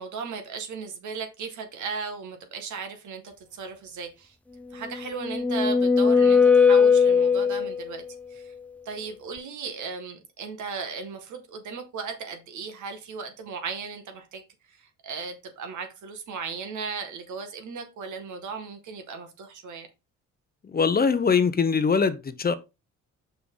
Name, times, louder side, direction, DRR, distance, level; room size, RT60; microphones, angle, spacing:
voice 1, 0.0-4.4 4.7-8.0 8.3-8.5 8.9-14.4 14.7-19.9, right 5 dB, 75° right, 2.0 m, -36 dB
sound 1, 4.9-7.9, left 5 dB, 5° left, 0.5 m, -19 dB
voice 2, 20.7-22.5, left 5 dB, 30° left, 0.8 m, -22 dB
6.1 x 5.6 x 3.8 m
cardioid pair, 90°, 30 cm